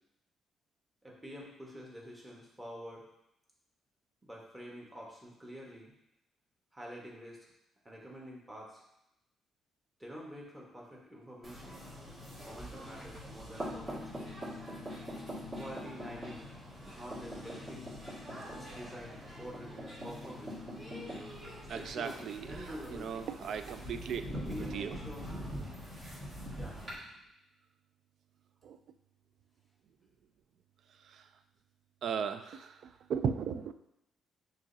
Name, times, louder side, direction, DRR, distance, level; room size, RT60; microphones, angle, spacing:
voice 1, 1.0-3.1 4.2-5.9 6.7-7.5 7.8-8.8 10.0-11.9 12.4-14.3 15.5-16.5 16.9-17.9 18.5-20.6 21.7-23.3 24.3-25.3 26.6-26.7, equal, 15° right, -3 dB, 1.3 m, -47 dB
sound 1, 11.4-26.9, equal, 30° right, 1.7 m, -43 dB
voice 2, 21.7-24.2 24.6-25.0 28.6-28.8 31.0-31.3 32.0-33.7, right 7 dB, 65° right, 10 dB, 0.3 m, -37 dB
6.0 x 3.0 x 2.7 m, 0.84 s
cardioid pair, 90°, 0 cm